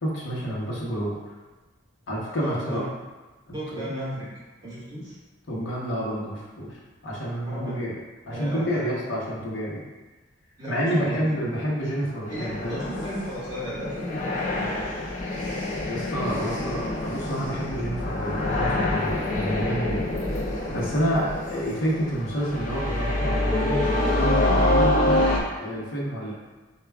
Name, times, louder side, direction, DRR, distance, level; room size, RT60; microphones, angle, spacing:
voice 1, 0.0-1.2 2.1-2.9 3.5-3.9 5.5-7.9 8.3-9.8 10.7-12.8 15.9-20.2 20.7-25.3 25.6-26.3, equal, 75° left, -4 dB, 0.9 m, -29 dB
voice 2, 2.4-2.9 3.5-4.3 4.6-5.2 7.5-7.8 8.3-9.0 10.6-11.2 12.3-14.8 16.3-16.7 24.3-24.8, equal, 20° right, -9 dB, 1.2 m, -34 dB
sound 1, 12.3-25.4, left 1 dB, 40° left, 0.5 m, -26 dB
6.3 x 2.3 x 2.3 m, 1.2 s
head